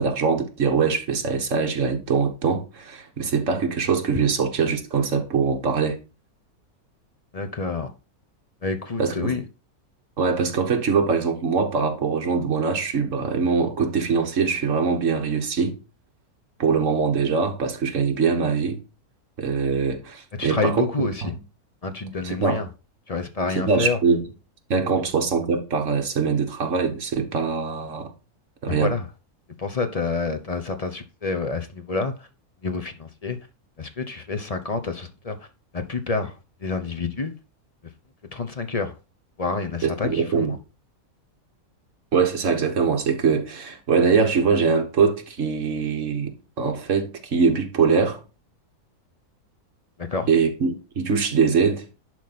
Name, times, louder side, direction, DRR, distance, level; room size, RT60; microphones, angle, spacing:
voice 1, 0.0-6.0 9.0-9.3 10.2-15.8 16.6-18.8 19.4-21.3 22.2-22.6 23.6-24.2 24.7-28.1 28.6-28.9 39.8-40.6 42.1-48.2 50.3-51.8, right 5 dB, 55° right, 1.8 m, -23 dB
voice 2, 7.3-7.9 8.6-9.4 20.4-21.3 21.8-22.7 23.1-24.0 28.7-29.1 29.6-32.3 32.6-33.4 33.8-35.4 35.7-36.3 36.6-37.3 38.3-38.9 39.4-40.6 50.0-50.3, left 4 dB, 30° left, 0.8 m, -28 dB
11.0 x 4.5 x 4.2 m
omnidirectional pair, 1.6 m